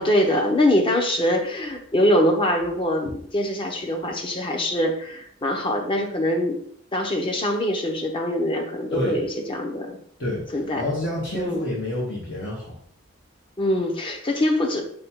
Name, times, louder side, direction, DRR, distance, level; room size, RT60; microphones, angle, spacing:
voice 1, 0.0-6.6 6.9-10.0 10.5-10.8 11.3-11.6 13.6-14.8, left 1 dB, 25° left, 3 dB, 0.7 m, -23 dB
voice 2, 8.9-9.2 10.2-12.8, left 1 dB, 65° left, -5 dB, 1.1 m, -28 dB
5.2 x 2.2 x 4.3 m, 0.64 s
head